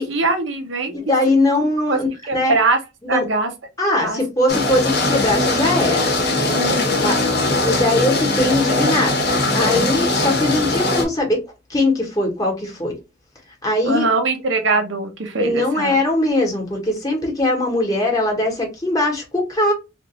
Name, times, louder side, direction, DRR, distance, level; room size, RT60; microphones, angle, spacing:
voice 1, 0.1-1.1 1.9-2.0 2.3-2.8 3.1-3.5 4.0-4.2 6.5-7.1 13.8-16.0, right 3 dB, 80° right, 0.9 m, -22 dB
voice 2, 0.9-2.1 2.3-2.6 3.0-3.2 3.8-6.0 7.0-7.2 7.6-9.1 9.5-11.4 11.7-12.9 13.6-14.1 15.4-19.7, left 1 dB, 20° left, 1.2 m, -20 dB
sound 1, 4.5-11.1, left 2 dB, 60° left, 1.0 m, -20 dB
3.2 x 2.5 x 3.0 m
head